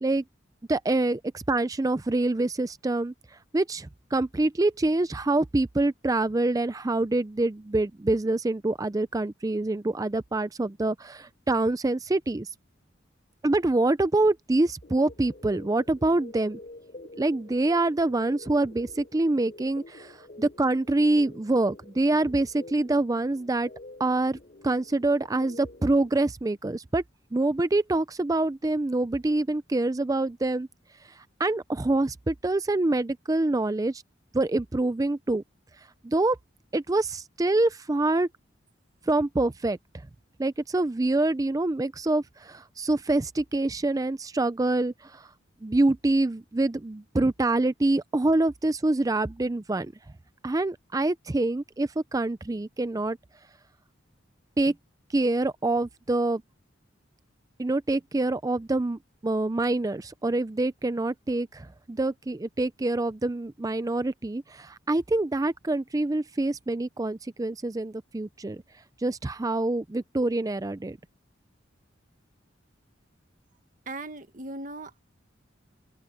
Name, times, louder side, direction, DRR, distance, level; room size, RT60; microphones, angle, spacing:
voice 1, 0.7-3.1 3.5-12.5 13.4-16.6 17.2-20.1 20.4-23.7 24.0-24.4 24.6-27.0 27.3-30.7 31.4-34.0 34.3-35.4 36.0-36.4 36.7-38.3 39.1-39.8 40.4-45.3 45.6-49.9 50.4-53.2 54.6-54.7 55.1-56.4 57.6-68.6 69.0-71.0, right 2 dB, 20° right, 0.4 m, -26 dB
sound 1, 14.8-26.1, left 2 dB, 40° left, 4.3 m, -48 dB
voice 2, 73.8-75.0, right 2 dB, 45° right, 1.6 m, -38 dB
open air
head